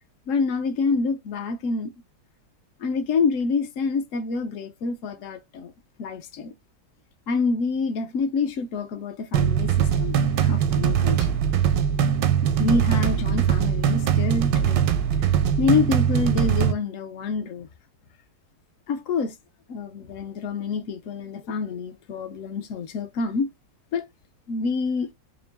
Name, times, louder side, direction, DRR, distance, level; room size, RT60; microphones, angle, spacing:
voice 1, 0.3-1.9 2.8-5.7 6.0-6.5 7.3-11.4 12.6-14.9 15.6-17.7 18.9-19.4 19.7-23.5 23.9-24.0 24.5-25.1, left 4 dB, 65° left, 0.8 m, -27 dB
sound 1, 9.3-16.7, right 8 dB, 80° right, 1.3 m, -21 dB
3.8 x 2.6 x 3.3 m
omnidirectional pair, 1.9 m